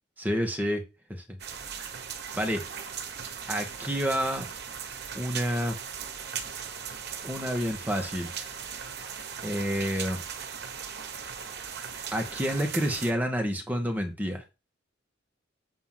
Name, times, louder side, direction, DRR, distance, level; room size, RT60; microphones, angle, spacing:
voice 1, 0.2-0.8 1.1-1.2 1.8-1.9 2.3-2.7 3.5-4.5 5.1-5.8 7.2-8.3 9.4-10.2 12.1-14.4, equal, 10° right, 3 dB, 1.8 m, -29 dB
sound 1, 1.4-13.1, right 7 dB, 60° right, 1.2 m, -38 dB
7.6 x 4.4 x 5.8 m, 0.27 s
head